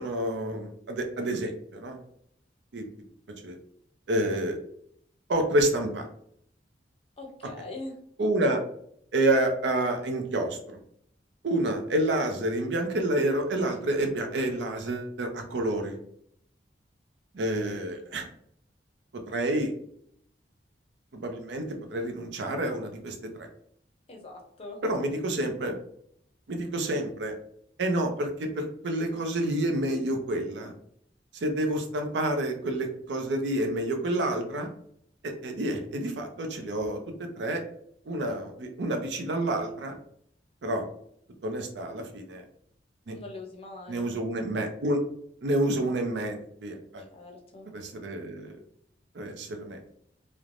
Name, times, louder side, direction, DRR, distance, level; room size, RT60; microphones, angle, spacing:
voice 1, 0.0-2.0 2.7-2.9 3.4-3.6 4.1-4.6 5.3-6.1 8.2-8.6 9.1-10.8 11.4-16.0 17.3-18.2 19.3-19.7 21.1-21.6 21.9-23.5 24.8-25.7 26.5-27.3 27.8-30.7 31.3-34.7 35.2-37.0 37.4-37.6 38.1-40.0 40.6-40.8 41.4-42.4 43.1-43.2 43.9-45.0 45.4-47.0 47.7-48.6 49.1-49.8, right 1 dB, 70° right, 4 dB, 0.5 m, -28 dB
voice 2, 7.2-7.9 24.1-24.8 43.1-44.1 47.1-47.7, left 2 dB, 35° left, 0 dB, 0.6 m, -42 dB
3.1 x 2.0 x 2.4 m, 0.68 s
head